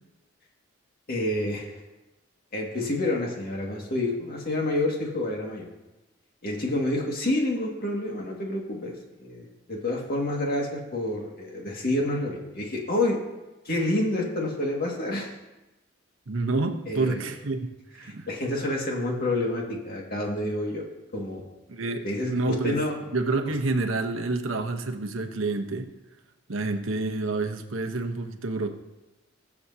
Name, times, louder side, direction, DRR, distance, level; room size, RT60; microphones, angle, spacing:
voice 1, 1.1-1.7 2.5-5.7 6.4-8.9 9.2-13.2 13.7-15.3 16.9-17.2 18.0-20.8 21.1-21.4 22.0-22.9 23.4-23.5, left 1 dB, 50° left, -1 dB, 2.1 m, -28 dB
voice 2, 16.3-18.3 21.7-22.8 23.1-25.9 26.5-28.7, right 3 dB, 85° right, 5 dB, 1.0 m, -28 dB
20.5 x 7.3 x 2.9 m, 1.1 s
head